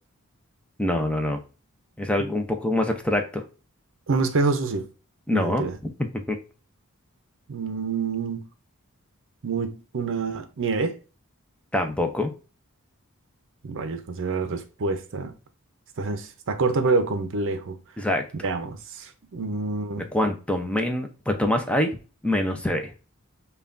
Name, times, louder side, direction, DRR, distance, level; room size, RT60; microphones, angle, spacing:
voice 1, 0.8-1.4 2.0-3.4 5.3-5.9 6.3-6.4 11.7-12.3 18.0-18.3 20.1-22.0 22.2-22.9, left 1 dB, 5° left, 0.5 m, -25 dB
voice 2, 4.1-4.9 5.3-5.8 7.5-8.5 9.4-11.0 13.6-15.3 16.0-17.8 18.4-20.0, right 4 dB, 60° right, 0.6 m, -27 dB
5.4 x 2.3 x 2.5 m
head